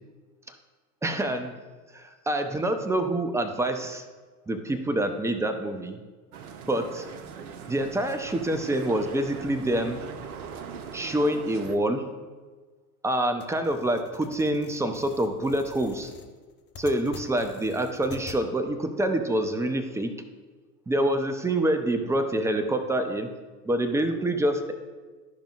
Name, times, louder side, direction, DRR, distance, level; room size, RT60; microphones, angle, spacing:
voice 1, 1.0-1.6 1.9-4.0 4.5-6.0 6.7-7.1 7.7-10.0 10.9-12.1 13.0-16.1 16.8-20.1 20.9-23.3 23.6-24.7, right 1 dB, 5° right, 7 dB, 0.6 m, -26 dB
sound 1, 6.3-11.7, right 6 dB, 70° right, 0.8 m, -41 dB
sound 2, 13.4-18.4, left 7 dB, 25° left, 0.8 m, -46 dB
13.0 x 5.1 x 2.4 m, 1.4 s
figure-of-eight pair, 80°, 46 cm